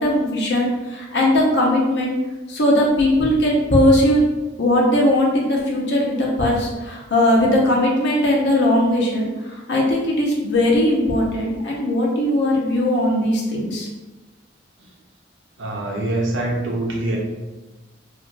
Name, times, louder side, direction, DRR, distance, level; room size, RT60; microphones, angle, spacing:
voice 1, 0.0-2.2 2.5-4.3 4.6-13.9, left 1 dB, 65° left, -3 dB, 0.7 m, -19 dB
voice 2, 15.6-17.2, right 1 dB, 90° right, -1 dB, 0.7 m, -24 dB
2.9 x 2.5 x 2.5 m, 1.1 s
head